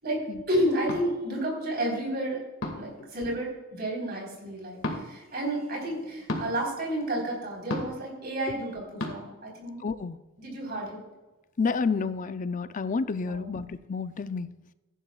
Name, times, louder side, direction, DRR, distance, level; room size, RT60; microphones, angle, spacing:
voice 1, 0.5-2.4 2.7-9.8 10.4-11.0 13.2-13.5, right 1 dB, 50° right, -2 dB, 3.9 m, -31 dB
sound 1, 0.9-1.1 2.6-2.9 4.8-5.0 6.3-6.5 7.7-8.0 9.0-9.1, left 1 dB, 80° left, 2.0 m, -31 dB
voice 2, 9.8-10.2 11.6-14.5, left 4 dB, 40° left, 12 dB, 0.5 m, -30 dB
15.0 x 11.0 x 2.4 m, 1.1 s
head